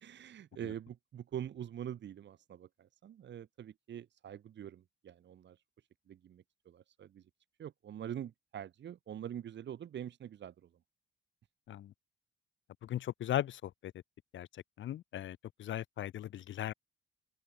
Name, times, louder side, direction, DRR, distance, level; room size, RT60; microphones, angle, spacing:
voice 1, 0.0-5.6 6.1-7.2 7.6-10.7, right 10 dB, 65° right, 3.8 m, -45 dB
voice 2, 12.8-13.9 14.3-14.5 14.8-16.7, left 12 dB, 75° left, 2.4 m, -37 dB
open air
cardioid pair, 90°, 20 cm